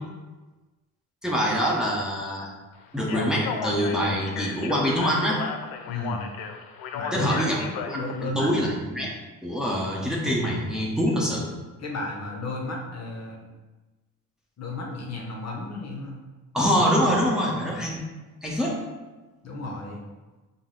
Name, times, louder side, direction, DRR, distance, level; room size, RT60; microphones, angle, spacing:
voice 1, 1.2-2.5 2.9-5.4 7.1-9.1 9.4-11.5 16.5-18.0 18.4-18.8, equal, ahead, -4 dB, 0.9 m, -25 dB
Speech, 3.0-8.3, left 6 dB, 85° left, 0.5 m, -35 dB
voice 2, 5.9-6.2 6.9-7.4 7.9-8.5 11.8-13.4 14.6-16.2 19.4-20.0, left 2 dB, 45° left, -1 dB, 0.8 m, -33 dB
5.4 x 2.1 x 3.8 m, 1.2 s
cardioid pair, 95°, 35 cm